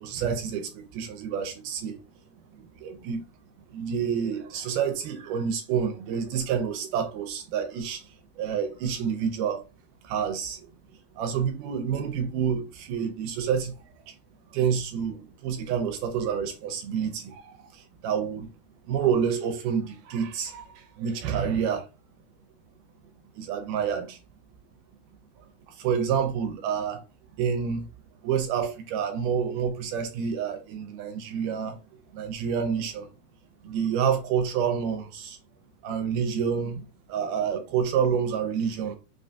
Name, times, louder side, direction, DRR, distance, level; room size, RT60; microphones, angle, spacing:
voice 1, 0.0-2.0 2.8-3.2 3.7-8.0 8.4-9.6 10.0-10.6 11.2-13.7 14.5-15.2 15.4-17.4 18.0-18.5 18.9-20.6 21.0-21.8 23.4-24.2 25.8-27.0 27.4-27.8 28.2-31.8 32.1-33.1 33.6-35.4 35.8-36.8 37.1-39.0, right 7 dB, 80° right, 2.1 m, -28 dB
5.5 x 2.3 x 2.6 m
omnidirectional pair, 3.8 m